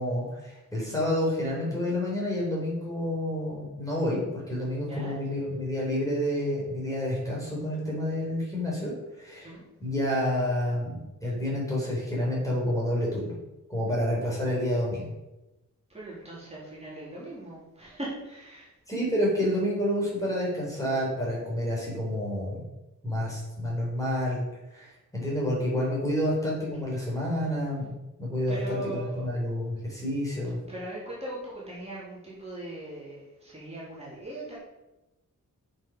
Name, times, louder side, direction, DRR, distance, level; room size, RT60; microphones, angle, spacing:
voice 1, 0.0-9.5 9.8-13.3 13.7-15.1 18.9-22.6 23.0-24.4 24.7-27.9 28.2-30.6, left 1 dB, 10° left, -5 dB, 4.1 m, -29 dB
voice 2, 15.9-18.7 28.5-29.3 30.7-34.6, right 2 dB, 20° right, -8 dB, 3.4 m, -39 dB
9.1 x 6.9 x 5.5 m, 0.99 s
wide cardioid pair, 150°, 32 cm